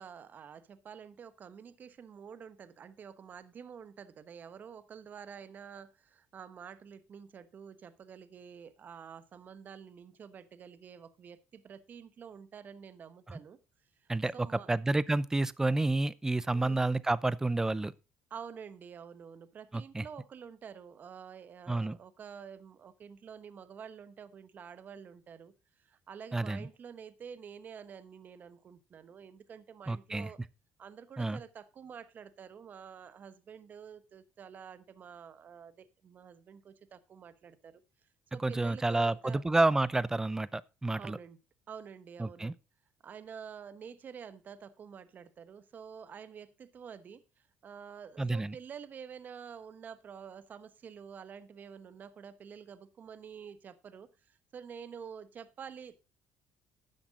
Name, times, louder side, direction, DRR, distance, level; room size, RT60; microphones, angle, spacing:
voice 1, 0.0-13.6 14.0-14.7 16.5-16.9 18.3-25.5 25.8-30.4 30.8-37.8 38.3-39.4 41.0-41.4 41.7-42.5 43.0-47.2 47.6-56.0, right 7 dB, 45° right, 1.1 m, -48 dB
voice 2, 14.1-17.9 19.7-20.1 21.7-22.0 26.3-26.7 29.9-30.3 31.2-31.4 38.4-41.2 42.2-42.5 48.2-48.6, right 2 dB, 15° right, 0.6 m, -30 dB
12.0 x 7.9 x 3.7 m
supercardioid pair, 85°, 4 cm